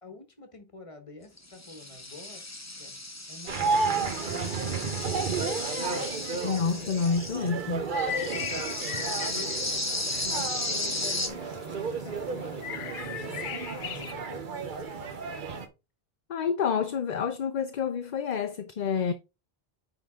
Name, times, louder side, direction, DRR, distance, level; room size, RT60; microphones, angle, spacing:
voice 1, 0.0-2.4 2.8-3.0 3.3-5.0 5.3-6.3 8.2-9.9 10.3-15.0, left 3 dB, 35° left, 1.3 m, -47 dB
sound 1, 1.4-7.5 8.1-11.3, left 2 dB, 15° left, 1.1 m, -35 dB
sound 2, 3.5-15.7, right 4 dB, 55° right, 1.1 m, -33 dB
voice 2, 6.4-7.9 16.3-19.1, left 6 dB, 50° left, 0.7 m, -28 dB
Blackbird Sweden short, 7.6-14.1, left 9 dB, 80° left, 0.9 m, -40 dB
9.2 x 3.9 x 3.6 m
omnidirectional pair, 1.0 m